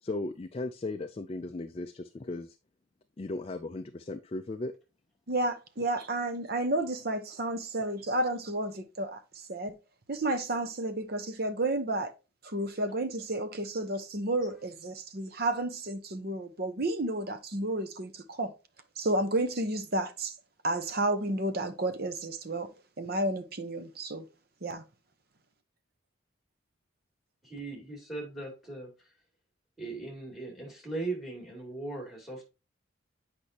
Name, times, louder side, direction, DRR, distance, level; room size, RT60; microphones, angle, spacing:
voice 1, 0.0-2.6 3.2-4.7, left 2 dB, 30° left, 0.4 m, -36 dB
voice 2, 5.3-9.7 10.1-12.1 12.4-18.5 19.0-20.3 20.6-22.7 23.0-24.2 24.6-24.8, right 2 dB, 45° right, 0.9 m, -31 dB
voice 3, 27.4-28.9 29.8-32.4, right 3 dB, ahead, 2.8 m, -38 dB
8.3 x 5.2 x 2.8 m
head